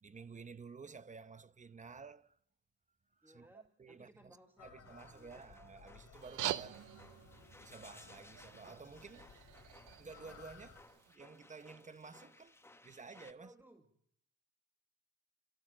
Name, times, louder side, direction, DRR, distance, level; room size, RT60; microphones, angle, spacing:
voice 1, 0.0-2.4 3.1-4.4 4.6-6.9 7.6-9.3 10.0-12.6 12.8-13.5, right 4 dB, 25° right, 0.9 m, -53 dB
voice 2, 3.2-5.5 13.3-13.9, right 1 dB, 5° right, 2.0 m, -62 dB
sound 1, 4.6-10.8, left 6 dB, 55° left, 3.7 m, -60 dB
sound 2, 4.8-13.3, left 2 dB, 10° left, 1.2 m, -61 dB
sound 3, 6.2-11.2, right 13 dB, 85° right, 0.9 m, -45 dB
27.5 x 14.5 x 7.5 m
cardioid pair, 90°, 30 cm